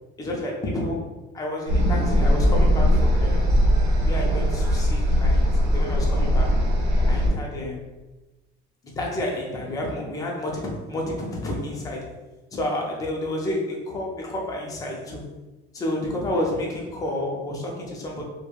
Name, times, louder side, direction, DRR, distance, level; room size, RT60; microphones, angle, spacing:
voice 1, 0.2-1.1 1.3-3.5 4.0-6.6 7.1-7.8 9.0-12.1 12.5-15.3 15.7-18.2, left 1 dB, 20° left, -1 dB, 0.5 m, -30 dB
sound 1, 1.7-7.3, equal, 70° right, 1.0 m, -20 dB
3.0 x 2.2 x 2.3 m, 1.1 s
cardioid pair, 155°, 19 cm